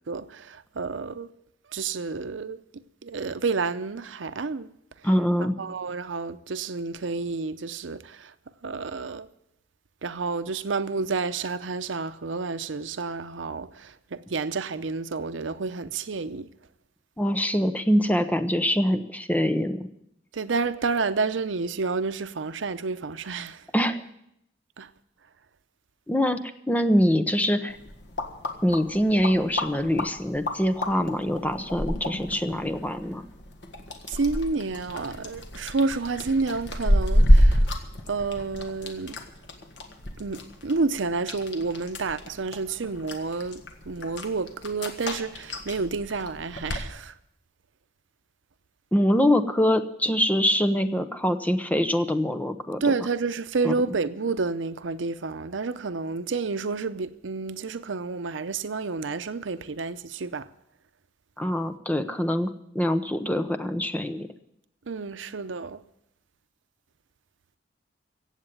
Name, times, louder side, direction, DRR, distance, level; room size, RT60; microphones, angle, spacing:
voice 1, 0.1-1.3 1.7-2.6 3.0-4.7 5.6-8.3 8.6-9.3 10.0-16.5 20.3-23.6 24.8-24.9 34.1-37.7 38.1-39.2 40.2-47.1 52.8-60.5 64.9-65.8, right 4 dB, 85° right, 0.7 m, -30 dB
voice 2, 5.0-5.6 17.2-19.9 23.7-24.0 26.1-27.8 28.6-33.3 48.9-52.9 53.6-53.7 61.4-64.3, equal, 10° left, 0.8 m, -24 dB
sound 1, 27.7-46.9, equal, 65° left, 1.6 m, -28 dB
15.5 x 8.2 x 9.1 m
head